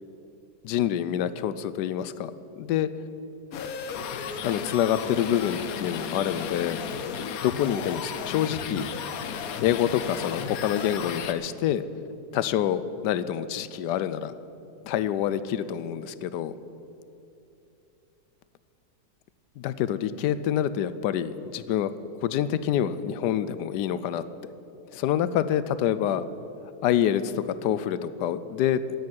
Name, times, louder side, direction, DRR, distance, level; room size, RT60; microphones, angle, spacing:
voice 1, 0.6-2.3 2.6-2.9 4.4-6.8 7.4-8.9 9.6-11.8 12.3-14.3 14.8-16.5 19.6-21.9 22.2-24.2 24.9-26.2 26.8-27.3 27.6-28.8, left 10 dB, 90° left, 14 dB, 1.2 m, -26 dB
sound 1, 3.5-11.3, left 7 dB, 65° left, 1.1 m, -34 dB
10.5 x 8.6 x 9.5 m, 2.8 s
omnidirectional pair, 1.8 m